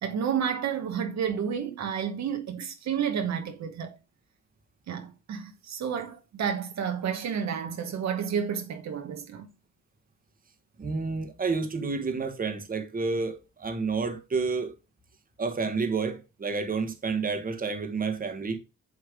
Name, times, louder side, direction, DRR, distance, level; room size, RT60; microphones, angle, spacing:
voice 1, 0.0-4.0 4.9-9.5, right 7 dB, 65° right, 1.2 m, -31 dB
voice 2, 10.8-14.7 15.4-18.6, right 4 dB, 30° right, 1.3 m, -30 dB
8.4 x 3.2 x 5.0 m
cardioid pair, 90°, 30 cm